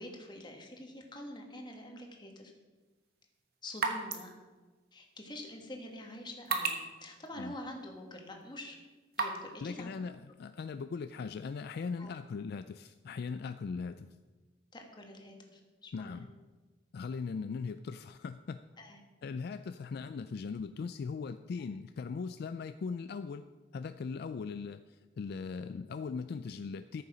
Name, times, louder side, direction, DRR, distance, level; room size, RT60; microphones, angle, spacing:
voice 1, 0.0-2.5 3.6-4.3 4.9-8.8 9.2-9.9 12.0-12.1 14.7-16.3 18.8-19.0, left 1 dB, 25° left, 2 dB, 1.6 m, -46 dB
Drips slow, 2.8-9.6, right 4 dB, 55° right, 1.2 m, -40 dB
voice 2, 9.6-14.1 15.9-16.3 16.9-18.6 19.2-23.4 23.7-27.0, left 5 dB, 55° left, 11 dB, 0.3 m, -39 dB
13.5 x 6.8 x 5.0 m, 1.3 s
head